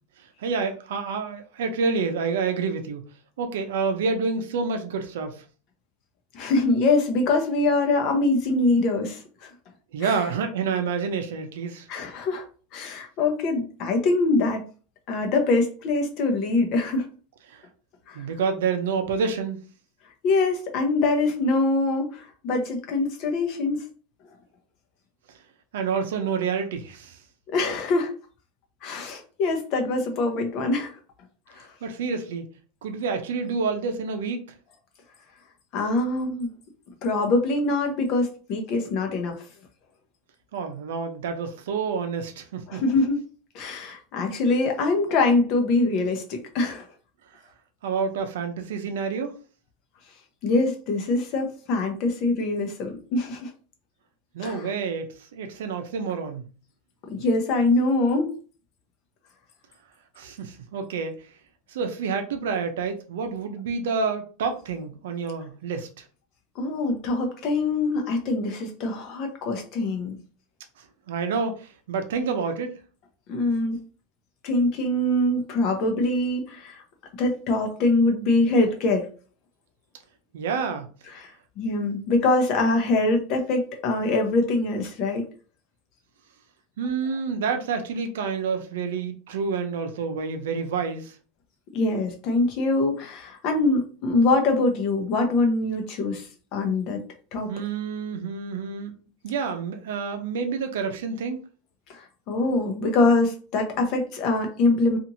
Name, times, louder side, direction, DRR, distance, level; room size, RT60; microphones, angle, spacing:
voice 1, 0.4-3.1 3.4-5.4 9.9-11.9 17.5-17.6 18.1-19.6 25.7-27.2 31.8-32.5 32.8-34.4 40.5-42.8 47.8-49.4 54.3-56.4 60.2-61.1 61.7-66.0 71.1-72.7 80.3-80.9 86.8-91.2 97.5-98.9 99.2-101.4, right 5 dB, 85° right, 0.5 m, -28 dB
voice 2, 6.3-9.5 10.0-10.2 11.9-12.4 12.7-14.7 15.1-17.1 18.1-18.2 20.2-23.8 27.5-28.1 28.8-30.9 31.6-31.7 35.7-36.5 37.0-39.4 42.7-43.2 43.5-46.8 50.4-53.5 54.4-54.6 57.1-58.3 66.6-70.2 73.3-73.8 74.4-76.8 77.2-79.1 81.1-85.2 91.7-96.3 96.5-97.0 97.3-97.5 101.9-105.0, left 2 dB, 35° left, 0.6 m, -24 dB
2.8 x 2.5 x 2.6 m
supercardioid pair, 170°, 0 cm